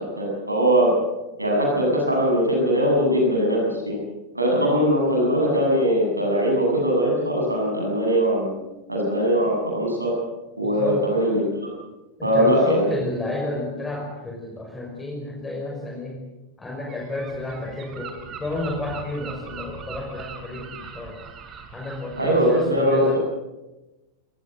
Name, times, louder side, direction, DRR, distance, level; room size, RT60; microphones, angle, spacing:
voice 1, 0.2-0.9 1.4-4.0 4.3-8.6 8.9-10.1 10.6-11.7 12.2-12.8 22.2-23.2, equal, 85° right, -1 dB, 7.8 m, -21 dB
voice 2, 10.6-11.1 12.2-16.3 16.6-21.2 21.7-23.2, left 2 dB, 10° left, 0 dB, 5.7 m, -31 dB
Gull seagull, 16.9-22.7, right 6 dB, 30° right, 5.2 m, -40 dB
28.5 x 19.0 x 7.9 m, 1.0 s
figure-of-eight pair, 90°, 0 cm